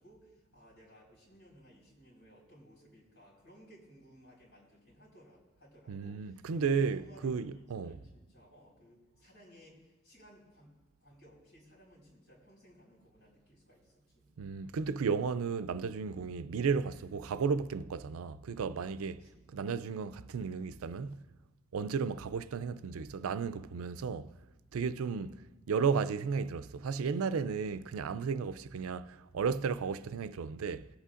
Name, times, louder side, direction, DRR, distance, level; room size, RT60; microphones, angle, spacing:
voice 1, 0.0-10.7 11.0-14.3 19.1-19.5 25.0-25.1, equal, 90° left, 4.3 m, -59 dB
voice 2, 5.9-8.0 14.4-19.2 19.5-21.2 21.7-24.3 24.7-25.4 25.7-30.9, right 5 dB, 80° right, 0.4 m, -34 dB
21.5 x 8.2 x 2.5 m
head